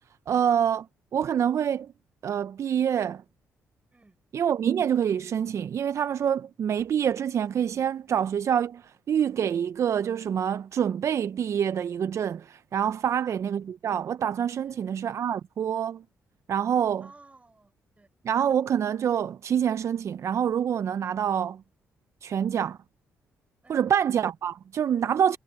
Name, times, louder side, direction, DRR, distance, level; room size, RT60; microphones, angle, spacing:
voice 1, 0.3-0.9 1.1-1.9 2.2-3.2 4.3-16.0 16.5-17.1 18.2-21.6 22.2-22.8 23.7-25.4, right 8 dB, 60° right, 0.5 m, -26 dB
voice 2, 14.6-15.0 17.0-18.1 23.6-23.9, right 3 dB, 25° right, 4.7 m, -56 dB
supercardioid pair, 65°, 6 cm